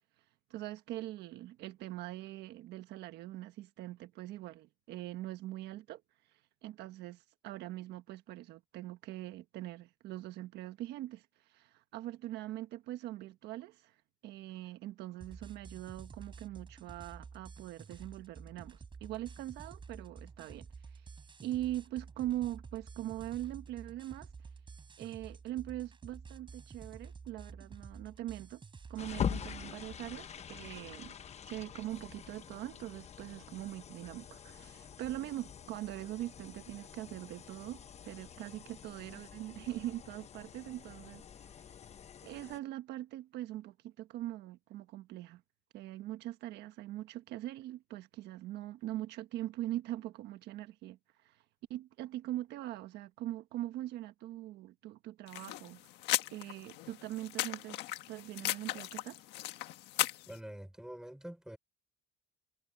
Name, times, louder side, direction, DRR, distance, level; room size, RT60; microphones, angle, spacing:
voice 1, 0.5-6.0 6.6-13.9 14.2-21.0 21.4-24.3 25.0-28.6 28.9-31.2 31.4-41.6 42.2-45.4 45.7-51.4 51.7-55.8 56.3-57.8 58.1-59.2, right 14 dB, 80° right, 1.3 m, -42 dB
sound 1, 15.2-29.6, right 5 dB, 30° right, 6.0 m, -51 dB
sound 2, 29.0-42.6, left 8 dB, 40° left, 1.1 m, -44 dB
sound 3, 55.3-60.4, left 16 dB, 90° left, 1.6 m, -37 dB
voice 2, 60.3-61.6, right 1 dB, 5° right, 4.7 m, -46 dB
cardioid pair, 110°, 17 cm